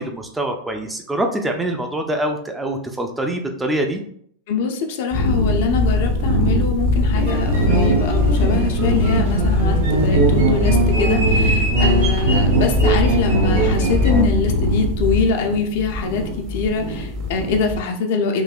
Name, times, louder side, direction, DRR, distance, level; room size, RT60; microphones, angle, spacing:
voice 1, 0.0-4.0, right 1 dB, 10° right, 4 dB, 0.4 m, -24 dB
voice 2, 4.5-18.4, left 4 dB, 50° left, 4 dB, 0.5 m, -23 dB
sound 1, 5.1-17.8, left 1 dB, 35° right, 0.8 m, -20 dB
sound 2, 7.2-14.2, right 2 dB, 60° right, 1.0 m, -21 dB
3.8 x 2.7 x 2.3 m, 0.65 s
figure-of-eight pair, 90°, 0 cm